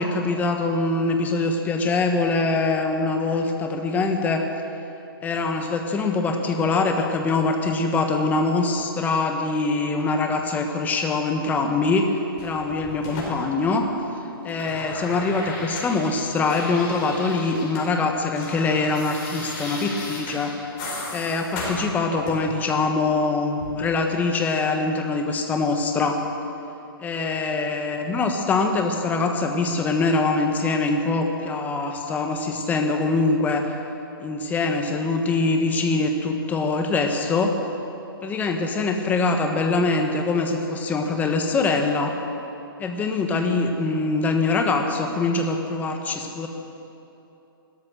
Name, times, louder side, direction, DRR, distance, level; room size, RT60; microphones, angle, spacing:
voice 1, 0.0-4.4 5.2-12.1 12.4-13.9 14.4-20.6 21.1-26.2 27.0-33.7 34.2-37.6 38.2-42.1 42.8-46.5, left 3 dB, 15° left, 4 dB, 1.2 m, -23 dB
sound 1, 12.4-14.1 14.3-17.9 18.1-22.6 23.6-23.7, left 2 dB, 35° left, 4.8 m, -35 dB
16.5 x 13.5 x 6.3 m, 3.0 s
hypercardioid pair, 140°, 12 cm